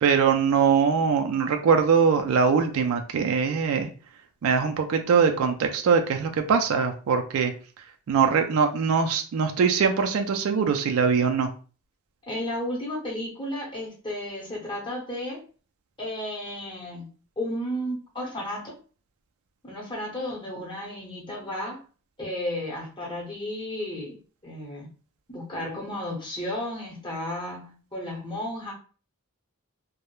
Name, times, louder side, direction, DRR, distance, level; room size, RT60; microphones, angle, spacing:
voice 1, 0.0-3.9 4.4-7.5 8.1-11.5, right 6 dB, 80° right, 5 dB, 0.4 m, -22 dB
voice 2, 12.3-15.4 16.0-17.1 17.4-18.8 19.6-21.8 22.2-24.2 24.4-24.9 25.3-28.7, left 1 dB, 20° left, -3 dB, 0.7 m, -33 dB
2.2 x 2.0 x 3.0 m, 0.37 s
head